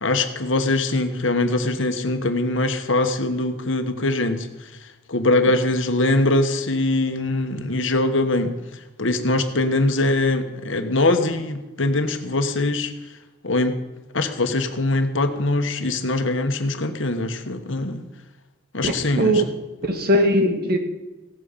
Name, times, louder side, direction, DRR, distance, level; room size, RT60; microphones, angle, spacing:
voice 1, 0.0-4.7 5.1-8.5 9.0-12.9 13.4-13.8 14.1-18.0 18.7-19.4, left 2 dB, 65° left, 7 dB, 1.4 m, -22 dB
voice 2, 18.8-19.5 19.8-20.8, equal, 45° right, 5 dB, 1.9 m, -20 dB
17.0 x 9.1 x 7.4 m, 1.1 s
head